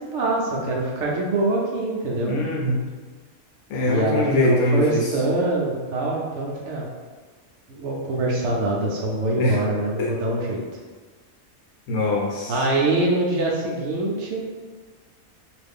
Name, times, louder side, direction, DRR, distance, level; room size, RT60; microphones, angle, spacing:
voice 1, 0.1-2.4 3.9-6.9 7.7-10.6 12.5-14.4, right 2 dB, 65° right, -3 dB, 0.8 m, -24 dB
voice 2, 2.3-2.8 3.7-5.2 9.4-9.6 10.0-10.1 11.9-12.6, left 2 dB, 80° left, -3 dB, 1.2 m, -23 dB
2.9 x 2.5 x 3.5 m, 1.4 s
omnidirectional pair, 1.5 m